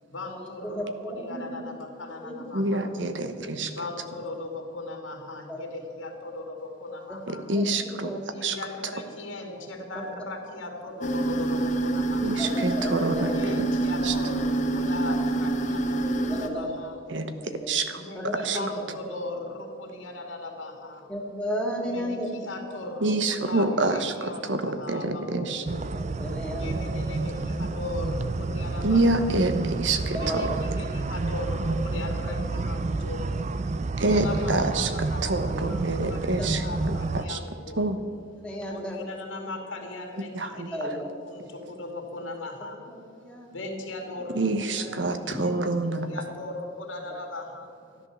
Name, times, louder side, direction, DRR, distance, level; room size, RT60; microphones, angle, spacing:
voice 1, 0.1-2.9 3.7-7.5 8.3-12.5 13.3-17.0 17.5-17.6 17.9-21.0 21.8-25.9 26.6-29.4 30.1-33.3 34.1-35.8 36.1-37.9 38.6-42.8 43.5-45.7 46.0-47.7, left 2 dB, 80° left, 2 dB, 2.6 m, -38 dB
voice 2, 0.6-1.6 2.2-2.3 3.5-3.7 5.5-5.6 7.6-7.7 8.0-8.2 12.4-13.3 16.3-16.7 17.4-17.7 18.2-18.9 21.1-22.3 26.0-26.8 30.1-30.4 34.2-34.4 36.4-36.5 38.4-39.1 40.7-41.1 43.1-43.5, equal, 5° left, -1 dB, 2.1 m, -33 dB
voice 3, 2.5-3.7 7.3-8.1 8.4-8.6 12.2-13.7 14.0-14.1 17.1-17.3 17.7-18.6 23.0-25.6 28.8-30.6 34.0-34.9 35.2-37.0 37.3-37.4 37.8-38.0 40.3-40.7 44.3-46.1, right 2 dB, 65° right, 8 dB, 1.1 m, -27 dB
sound 1, 11.0-16.5, right 2 dB, 35° left, 1.1 m, -26 dB
sound 2, 25.7-37.2, right 3 dB, 35° right, 0.4 m, -30 dB
13.5 x 11.0 x 7.1 m, 2.5 s
head